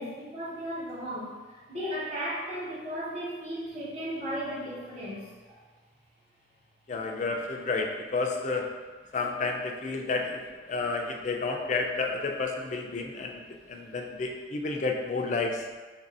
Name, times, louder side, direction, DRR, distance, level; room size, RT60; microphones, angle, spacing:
voice 1, 0.0-5.6 13.8-13.9, equal, 35° right, -10 dB, 1.1 m, -36 dB
voice 2, 6.9-8.7 9.1-13.4 13.7-15.7, left 3 dB, 40° left, 2 dB, 0.3 m, -31 dB
3.2 x 2.6 x 4.1 m, 1.4 s
head